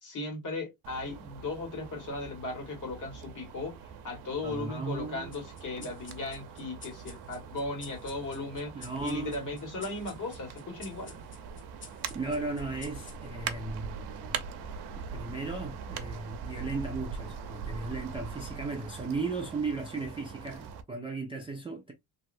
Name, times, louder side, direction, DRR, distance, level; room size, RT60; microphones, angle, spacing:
voice 1, 0.0-11.2, left 2 dB, 50° left, 1.5 m, -37 dB
sound 1, 0.8-20.8, right 6 dB, 70° right, 0.6 m, -42 dB
voice 2, 4.4-5.3 5.8-5.9 8.7-9.3 12.1-14.4 15.1-21.9, right 3 dB, 15° right, 0.3 m, -36 dB
sound 2, 5.3-14.2, left 4 dB, 30° left, 0.7 m, -53 dB
3.1 x 2.7 x 2.5 m
cardioid pair, 165°, 40 cm